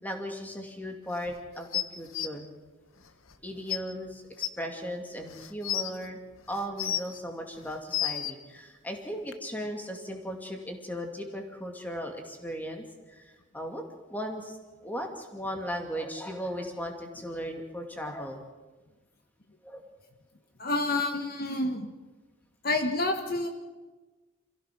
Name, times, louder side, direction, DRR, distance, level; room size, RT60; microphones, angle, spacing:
voice 1, 0.0-2.5 3.4-6.2 6.5-13.8 14.1-18.4 19.6-19.8, equal, 10° left, 3 dB, 2.4 m, -37 dB
sound 1, 1.7-2.3 3.3-3.4 3.7-3.8 4.4-4.5 5.3-5.9 6.5-7.2 7.7-8.3 9.3-9.4, left 11 dB, 85° left, 1.0 m, -30 dB
voice 2, 20.6-21.9 22.6-23.5, left 2 dB, 45° left, 5 dB, 1.5 m, -28 dB
27.0 x 16.0 x 6.1 m, 1.3 s
head